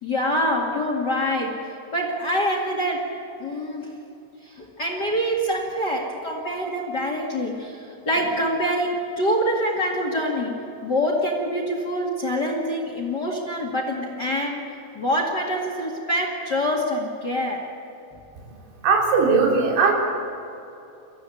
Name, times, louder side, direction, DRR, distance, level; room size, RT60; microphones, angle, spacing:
voice 1, 0.0-3.1 3.4-4.0 4.4-10.5 10.8-14.6 14.9-17.6, equal, 40° left, 1 dB, 1.5 m, -25 dB
voice 2, 18.8-19.9, right 4 dB, 75° right, -1 dB, 5.7 m, -18 dB
24.0 x 15.5 x 8.6 m, 2.8 s
omnidirectional pair, 5.3 m